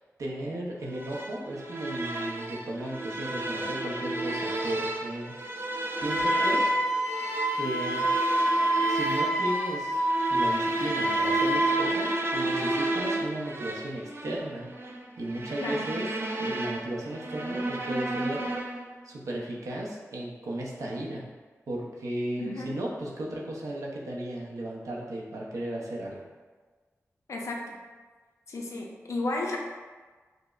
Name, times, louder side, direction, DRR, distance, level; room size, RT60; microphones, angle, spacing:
voice 1, 0.2-5.3 6.0-6.6 7.5-8.1 8.9-10.0 10.3-14.7 15.2-16.1 16.4-18.5 19.0-21.3 21.7-26.2, right 1 dB, 90° right, -3 dB, 0.6 m, -35 dB
sound 1, 0.9-18.9, right 1 dB, 45° right, 0.4 m, -32 dB
Wind instrument woodwind instrument, 6.1-11.7, right 1 dB, 5° right, 0.7 m, -27 dB
voice 2, 15.6-15.9 22.4-22.7 27.3-27.8 28.5-29.6, left 2 dB, 65° left, -1 dB, 0.5 m, -33 dB
4.9 x 2.0 x 2.4 m, 1.4 s
wide cardioid pair, 85°, 5 cm